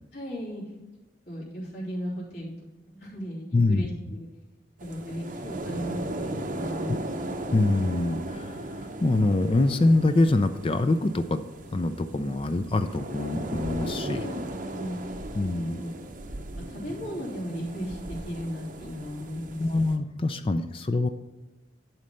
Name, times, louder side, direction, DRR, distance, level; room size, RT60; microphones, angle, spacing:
voice 1, 0.1-0.6 1.3-2.5 2.9-4.3 4.8-7.3 12.8-13.0 14.2-14.4 14.7-15.0 15.4-15.9 16.7-19.6, equal, 60° left, -6 dB, 3.1 m, -36 dB
voice 2, 3.5-4.2 6.9-7.0 7.5-11.4 11.7-14.3 15.4-15.8 19.6-21.1, left 2 dB, 30° left, 10 dB, 0.4 m, -25 dB
sound 1, 4.8-20.0, right 1 dB, 45° right, 0.7 m, -37 dB
11.0 x 4.3 x 5.2 m, 1.1 s
head